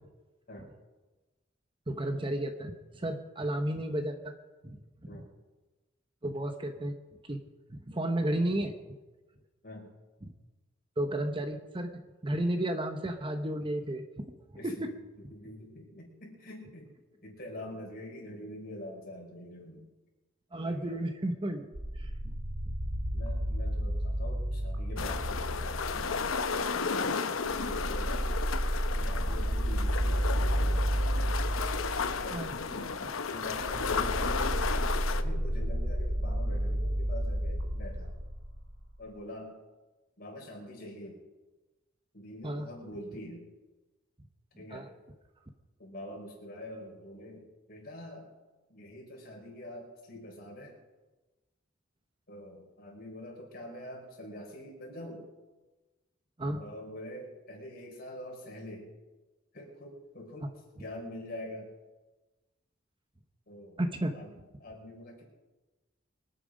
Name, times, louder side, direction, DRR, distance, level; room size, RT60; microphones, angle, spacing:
voice 1, 1.9-4.3 4.6-4.8 6.2-6.9 7.3-7.4 7.7-8.8 10.2-10.3 11.0-14.0 14.6-14.9 20.5-21.7 22.0-22.3 32.3-32.6 33.0-33.1 42.4-42.7 44.7-44.8 56.4-56.6 63.8-64.2, right 1 dB, 25° right, 6 dB, 1.0 m, -32 dB
voice 2, 14.5-16.9 17.2-19.8 20.6-21.1 23.1-26.0 26.9-28.5 28.9-30.9 32.1-32.4 33.2-38.1 39.0-39.6 40.2-41.2 42.1-43.4 44.6-44.9 45.8-48.3 48.7-50.8 52.3-55.2 56.5-58.9 59.5-61.7 63.5-63.8 64.1-65.2, left 1 dB, 50° left, -1 dB, 5.0 m, -45 dB
sound 1, 21.7-26.9 27.4-38.9, equal, 70° right, 2.3 m, -32 dB
sound 2, 25.0-35.2, left 5 dB, 90° left, 0.8 m, -33 dB
24.5 x 9.1 x 5.1 m, 1.2 s
head